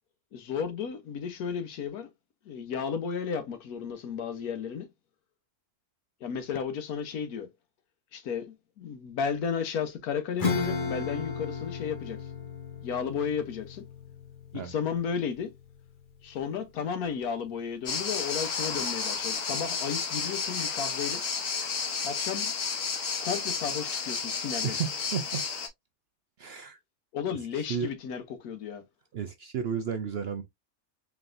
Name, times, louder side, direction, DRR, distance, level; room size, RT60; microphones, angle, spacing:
voice 1, 0.3-2.1 2.5-4.9 6.2-7.5 8.1-12.2 12.8-13.8 14.5-15.5 16.2-21.2 22.0-22.5 23.2-24.8 27.1-28.8, left 7 dB, 85° left, 1.3 m, -33 dB
Acoustic guitar / Strum, 10.4-16.4, left 4 dB, 40° left, 1.1 m, -35 dB
sound 1, 17.9-25.7, left 5 dB, 65° left, 1.3 m, -32 dB
voice 2, 24.6-25.4 26.4-26.8 27.5-27.9 29.1-30.4, right 7 dB, 65° right, 0.6 m, -33 dB
4.1 x 3.4 x 2.5 m
omnidirectional pair, 1.5 m